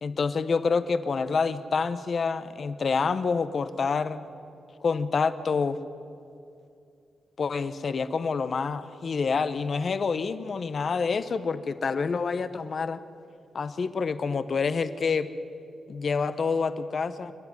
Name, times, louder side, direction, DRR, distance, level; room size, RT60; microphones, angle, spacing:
voice 1, 0.0-4.3 4.8-5.8 7.4-13.0 13.5-15.3 15.9-17.3, left 5 dB, 50° left, 12 dB, 1.1 m, -27 dB
29.0 x 10.5 x 9.6 m, 2.5 s
cardioid pair, 100°, 0 cm